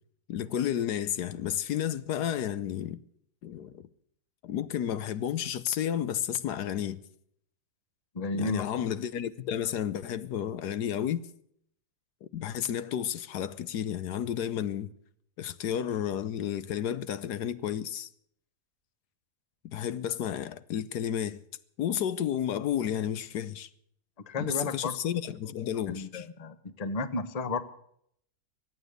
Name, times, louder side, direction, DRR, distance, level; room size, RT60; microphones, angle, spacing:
voice 1, 0.3-3.0 3.4-3.9 4.4-7.0 8.3-11.2 12.3-14.9 15.4-18.1 19.6-21.4 21.8-23.7 24.4-26.3, left 10 dB, 75° left, 1.3 m, -32 dB
voice 2, 8.1-8.8 24.3-25.0 25.9-27.6, left 3 dB, 30° left, 0.9 m, -33 dB
24.0 x 9.2 x 6.6 m
omnidirectional pair, 1.7 m